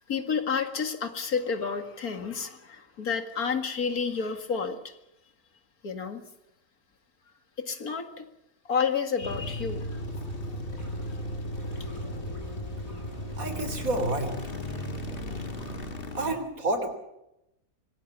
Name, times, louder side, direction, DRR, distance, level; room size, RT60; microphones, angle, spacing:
voice 1, 0.1-4.9 5.8-6.2 7.6-8.3 8.7-9.9, left 6 dB, 90° left, 8 dB, 2.5 m, -30 dB
sound 1, 9.2-16.4, left 1 dB, 40° left, 2.1 m, -36 dB
sound 2, 9.3-15.9, left 1 dB, 65° left, 8.0 m, -43 dB
voice 2, 13.4-14.4 16.1-16.9, right 2 dB, 70° right, 8 dB, 3.7 m, -29 dB
25.0 x 19.0 x 7.2 m, 0.87 s
omnidirectional pair, 1.5 m